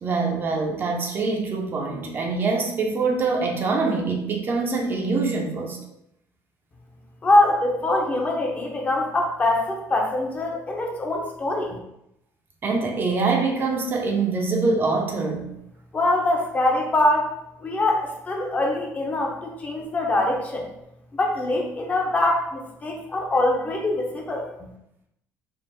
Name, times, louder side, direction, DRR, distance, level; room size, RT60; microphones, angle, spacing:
voice 1, 0.0-5.8 12.6-15.5, right 4 dB, 35° right, 2 dB, 0.5 m, -24 dB
voice 2, 7.2-11.8 15.9-17.3 17.6-20.7 21.1-24.5, left 2 dB, 25° left, 1 dB, 0.6 m, -23 dB
3.5 x 2.0 x 4.2 m, 0.81 s
cardioid pair, 130°, 6 cm